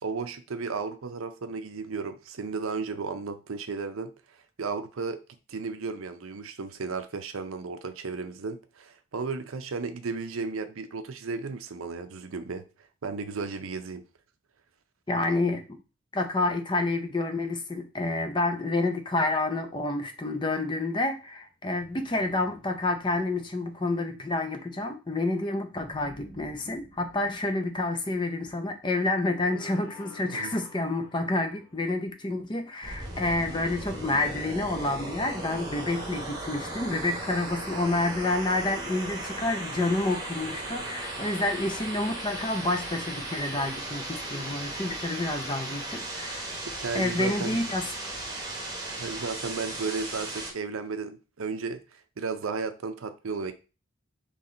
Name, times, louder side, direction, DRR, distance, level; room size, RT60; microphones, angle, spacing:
voice 1, 0.0-4.1 4.6-5.2 5.5-12.6 13.0-14.0 30.3-30.6 40.8-40.9 46.7-47.6 49.0-51.8 52.2-53.5, right 4 dB, 85° right, 0.6 m, -34 dB
voice 2, 15.1-15.7 16.1-46.5 46.9-47.9, left 2 dB, 20° left, 0.6 m, -29 dB
sound 1, 20.2-20.3 21.6-24.3 25.7-28.8 29.4-31.9, left 1 dB, 50° left, 1.6 m, -51 dB
sound 2, 32.8-50.5, right 1 dB, 20° right, 1.1 m, -36 dB
4.3 x 3.1 x 3.8 m
head